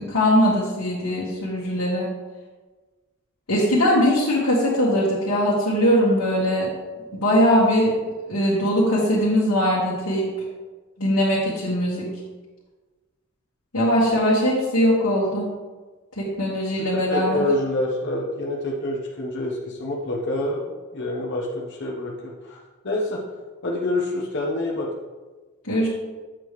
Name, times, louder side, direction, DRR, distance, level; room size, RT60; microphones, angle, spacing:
voice 1, 0.0-2.1 3.5-6.7 7.2-7.9 8.3-10.3 11.0-12.1 13.7-15.4 16.2-17.4 25.7-25.9, equal, 90° left, -7 dB, 1.6 m, -20 dB
voice 2, 16.9-22.6 22.8-23.2 23.6-24.9, left 1 dB, 55° left, -3 dB, 0.9 m, -27 dB
7.5 x 6.6 x 3.1 m, 1.3 s
head